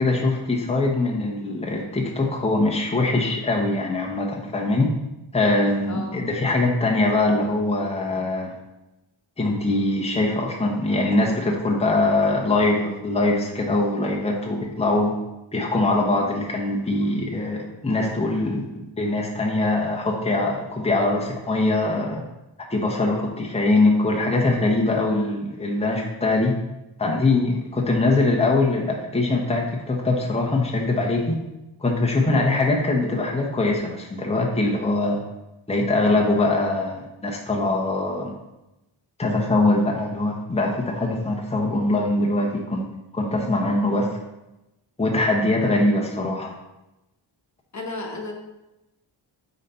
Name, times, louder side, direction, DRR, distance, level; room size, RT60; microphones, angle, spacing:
voice 1, 0.0-4.9 5.3-8.5 9.4-15.1 15.5-22.2 22.7-26.5 27.0-31.3 31.8-35.2 35.7-38.3 39.2-42.9 43.1-44.1 45.0-46.5, left 2 dB, 15° left, -1 dB, 1.1 m, -22 dB
voice 2, 5.9-6.2 32.1-32.5 47.7-48.3, left 3 dB, 35° left, 1 dB, 1.3 m, -33 dB
9.1 x 4.1 x 4.4 m, 0.97 s
wide cardioid pair, 100°, 47 cm